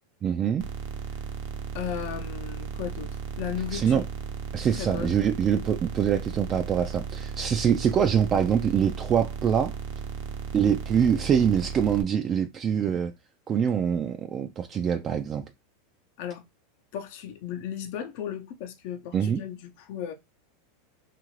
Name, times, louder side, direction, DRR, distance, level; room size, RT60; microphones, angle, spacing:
voice 1, 0.2-0.7 3.7-4.0 4.5-9.7 10.5-13.1 13.5-15.5 19.1-19.4, right 8 dB, 35° right, 0.3 m, -24 dB
sound 1, 0.6-12.0, right 5 dB, 65° right, 0.7 m, -35 dB
voice 2, 1.7-4.0 4.7-5.2 16.2-16.4 16.9-20.1, left 9 dB, 60° left, 0.6 m, -35 dB
2.7 x 2.5 x 3.0 m
hypercardioid pair, 110°, 0 cm